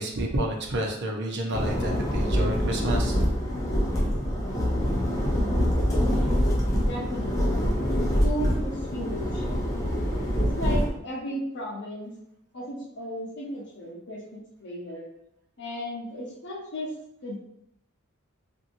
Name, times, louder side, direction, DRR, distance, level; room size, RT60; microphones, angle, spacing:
voice 1, 0.0-3.1, right 1 dB, 55° right, 1 dB, 0.5 m, -29 dB
sound 1, 1.5-10.9, equal, 15° left, 0.6 m, -25 dB
voice 2, 6.8-7.7 8.2-9.4 10.4-12.1 12.5-15.0 15.6-16.9 17.2-17.4, equal, 55° left, -3 dB, 0.8 m, -35 dB
2.8 x 2.6 x 2.6 m, 0.76 s
head